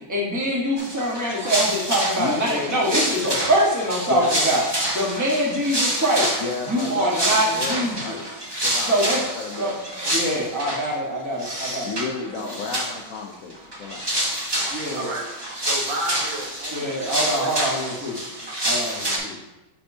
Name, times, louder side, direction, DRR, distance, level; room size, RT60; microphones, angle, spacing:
voice 1, 0.1-4.7 4.9-6.3 6.7-8.2 8.9-9.2 9.6-9.7 10.0-11.9 12.4-12.5 14.7-15.1 16.7-18.2 18.6-19.4, equal, 10° right, -4 dB, 0.9 m, -24 dB
sound 1, 0.8-10.9 11.4-12.1 12.3-13.2 13.5-19.2, right 1 dB, 35° right, 0.4 m, -27 dB
voice 2, 2.2-2.8 4.1-4.4 6.4-8.3 8.6-10.0 11.8-14.1, left 4 dB, 80° left, 0 dB, 0.7 m, -32 dB
voice 3, 14.6-15.2 15.6-18.1, right 2 dB, 65° right, -2 dB, 1.9 m, -33 dB
8.9 x 4.4 x 2.7 m, 1.0 s
omnidirectional pair, 2.3 m